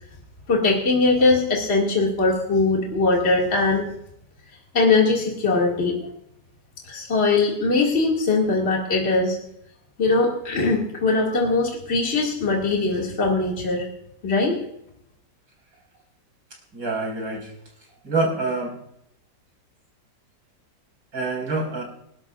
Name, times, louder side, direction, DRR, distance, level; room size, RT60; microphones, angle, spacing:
voice 1, 0.5-3.8 4.7-6.0 6.9-9.4 10.0-13.9 14.2-14.6, left 3 dB, 35° left, -2 dB, 2.4 m, -21 dB
voice 2, 16.7-17.5 18.0-18.7 21.1-21.8, right 3 dB, 70° right, -2 dB, 5.8 m, -26 dB
27.5 x 12.0 x 2.4 m, 0.76 s
omnidirectional pair, 2.0 m